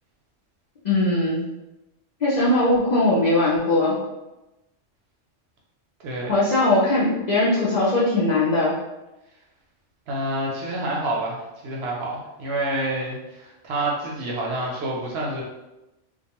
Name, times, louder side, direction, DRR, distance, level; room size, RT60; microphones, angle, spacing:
voice 1, 0.8-1.4 2.2-3.9 6.3-8.7, left 2 dB, 50° left, -9 dB, 0.5 m, -20 dB
voice 2, 10.1-15.4, right 1 dB, 65° right, -2 dB, 0.7 m, -28 dB
2.4 x 2.2 x 2.8 m, 1.0 s
omnidirectional pair, 1.3 m